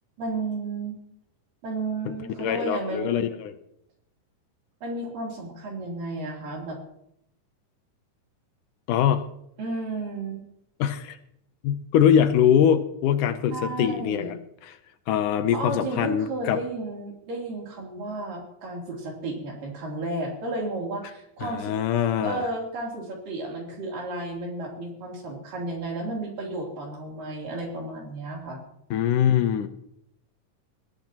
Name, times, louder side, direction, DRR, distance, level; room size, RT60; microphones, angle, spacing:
voice 1, 0.2-1.0 1.6-3.3 4.8-6.8 9.6-10.4 13.5-14.4 15.5-21.7 22.2-28.6, right 2 dB, 80° right, -1 dB, 5.0 m, -33 dB
voice 2, 2.4-3.5 8.9-9.3 10.8-11.2 11.6-14.4 14.6-14.8 15.1-16.6 21.4-22.4 28.9-29.7, left 9 dB, 75° left, 10 dB, 2.2 m, -23 dB
20.5 x 16.5 x 3.0 m, 0.78 s
omnidirectional pair, 3.8 m